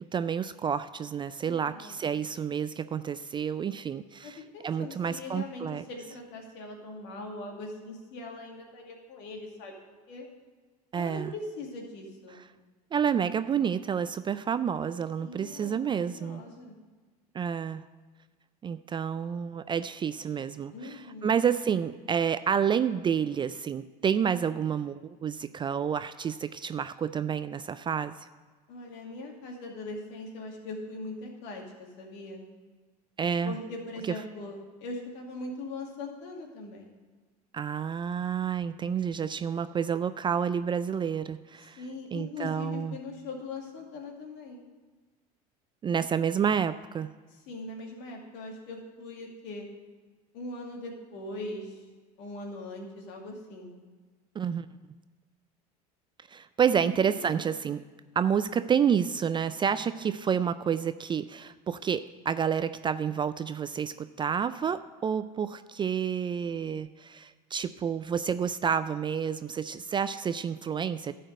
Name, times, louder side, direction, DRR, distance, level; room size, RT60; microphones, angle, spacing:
voice 1, 0.1-5.8 10.9-11.3 12.9-16.4 17.3-17.8 18.6-28.3 33.2-33.5 37.5-41.8 42.1-43.0 45.8-47.1 54.4-54.7 56.3-57.8 58.2-71.1, right 7 dB, 25° right, 13 dB, 0.3 m, -29 dB
voice 2, 1.4-2.2 4.2-9.7 10.1-10.3 10.9-12.5 15.2-16.8 20.7-21.3 28.7-32.4 33.4-36.9 41.8-44.6 47.3-49.7 50.3-51.8 52.2-53.8 56.7-57.6, left 2 dB, 65° left, 1 dB, 2.4 m, -41 dB
11.5 x 5.1 x 7.7 m, 1.4 s
hypercardioid pair, 90°, 20 cm